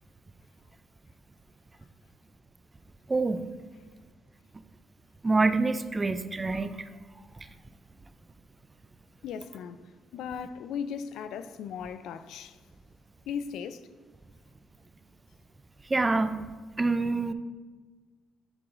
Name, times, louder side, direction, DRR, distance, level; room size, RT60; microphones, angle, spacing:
voice 1, 3.1-3.4 5.2-6.7 15.9-16.4 16.8-17.3, right 3 dB, 15° right, 0.3 m, -26 dB
voice 2, 9.2-9.8 10.1-12.6 13.3-13.9, left 7 dB, 80° left, 0.3 m, -37 dB
10.5 x 4.7 x 2.5 m
cardioid pair, 160°, 0 cm